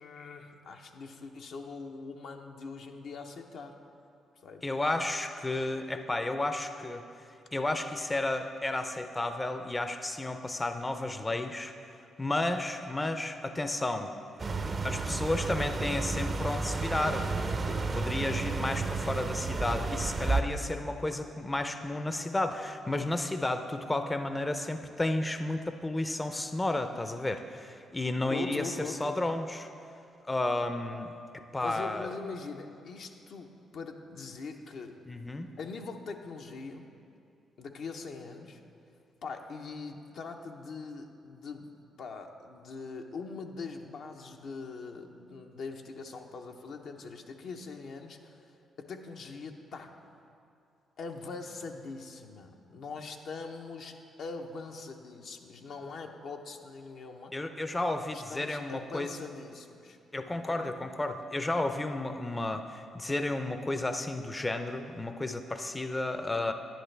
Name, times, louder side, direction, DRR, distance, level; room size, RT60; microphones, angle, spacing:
voice 1, 0.0-3.8 4.4-4.7 28.3-29.2 31.6-35.0 35.6-36.9 37.6-38.6 39.2-41.7 42.0-48.5 48.8-50.0 51.0-57.3 58.0-60.0 60.3-60.7, left 4 dB, 70° left, 3 dB, 0.7 m, -42 dB
voice 2, 4.6-7.0 7.5-11.7 12.2-14.1 14.8-17.3 17.7-29.7 30.2-31.1 31.5-32.1 35.1-35.5 57.3-59.1 60.1-66.5, left 2 dB, 20° left, 8 dB, 0.5 m, -32 dB
sound 1, 14.4-20.4, right 3 dB, 40° right, 0.6 m, -32 dB
10.0 x 10.0 x 3.3 m, 2.5 s
supercardioid pair, 60°, 0 cm